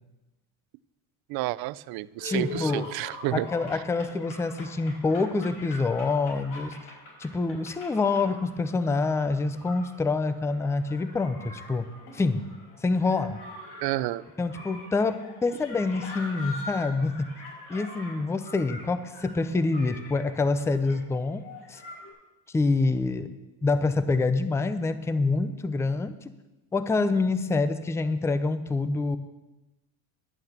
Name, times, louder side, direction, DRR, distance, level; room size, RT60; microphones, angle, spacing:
voice 1, 1.3-3.5 13.8-14.2, right 17 dB, 55° right, 18 dB, 0.5 m, -30 dB
sound 1, 2.2-22.1, left 2 dB, 90° left, 4.7 m, -44 dB
voice 2, 2.2-2.9 3.3-6.7 7.2-11.9 12.1-12.5 12.8-13.4 14.4-17.3 17.7-21.4 21.7-21.8 22.5-23.3 23.6-26.1 26.7-29.2, left 3 dB, 5° left, 12 dB, 0.4 m, -26 dB
11.0 x 7.2 x 7.9 m, 1.1 s
cardioid pair, 130°, 43 cm